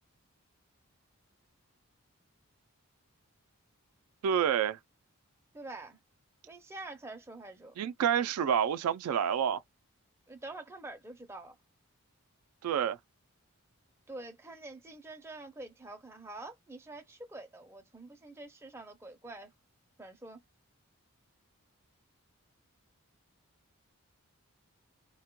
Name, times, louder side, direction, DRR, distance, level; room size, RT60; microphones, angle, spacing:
voice 1, 4.2-4.8 7.8-9.6 12.6-13.0, right 8 dB, 80° right, 0.3 m, -28 dB
voice 2, 5.5-6.0 6.4-7.7 10.3-11.6 14.1-19.5 20.0-20.4, right 2 dB, 10° right, 0.4 m, -46 dB
2.1 x 2.1 x 2.9 m
head